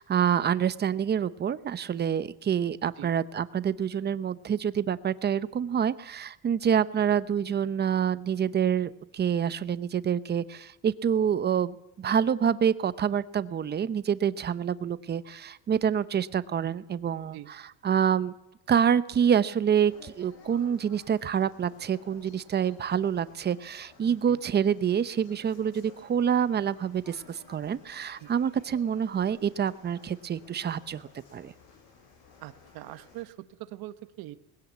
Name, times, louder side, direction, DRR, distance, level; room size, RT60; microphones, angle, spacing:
voice 1, 0.0-18.3 18.7-31.5, right 8 dB, 25° right, 15 dB, 0.8 m, -27 dB
sound 1, 19.7-33.2, left 5 dB, 80° left, 6.5 m, -56 dB
voice 2, 24.1-24.4 28.2-28.3 32.4-34.3, right 16 dB, 70° right, 11 dB, 1.4 m, -43 dB
20.5 x 16.5 x 8.3 m, 0.85 s
cardioid pair, 135°, 37 cm